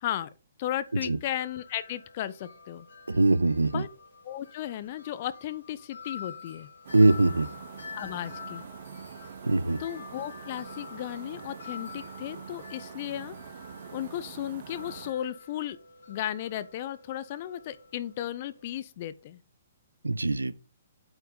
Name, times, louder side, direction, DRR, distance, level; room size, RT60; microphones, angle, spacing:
voice 1, 0.6-2.9 3.7-3.9 4.2-6.7 7.9-8.6 9.8-13.4 13.9-15.8 16.1-19.4, left 12 dB, 45° left, 0.7 m, -35 dB
Wind chime, 0.9-18.8, left 5 dB, 75° left, 3.4 m, -48 dB
voice 2, 3.1-3.8 6.9-7.5 9.4-9.8 20.0-20.5, right 2 dB, 85° right, 0.5 m, -22 dB
sound 1, 6.8-15.1, right 7 dB, 55° right, 0.9 m, -45 dB
8.7 x 4.6 x 3.7 m
figure-of-eight pair, 125°, 0 cm